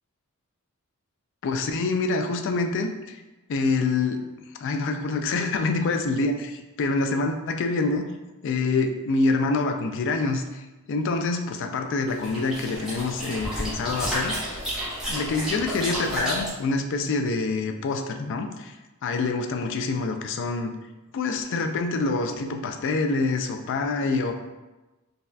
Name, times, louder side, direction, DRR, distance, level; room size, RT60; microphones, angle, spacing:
voice 1, 1.4-3.2 3.5-4.3 4.6-8.0 8.4-10.6 10.9-14.7 15.1-18.7 19.0-20.7 21.1-24.3, left 3 dB, 60° left, 5 dB, 0.3 m, -26 dB
sound 1, 12.1-16.5, equal, 5° right, 0.8 m, -31 dB
3.9 x 2.3 x 2.6 m, 1.1 s
head